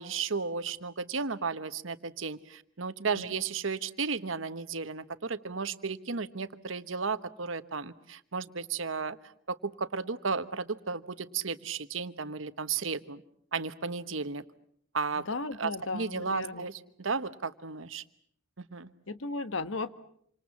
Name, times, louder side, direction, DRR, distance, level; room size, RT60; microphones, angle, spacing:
voice 1, 0.0-9.2 9.5-13.2 13.5-14.4 14.9-15.3 15.6-18.0 18.7-18.9, right 5 dB, 80° right, 12 dB, 1.2 m, -34 dB
voice 2, 15.3-16.7 19.1-19.9, left 3 dB, 80° left, 12 dB, 1.3 m, -35 dB
27.5 x 26.0 x 7.2 m, 0.66 s
head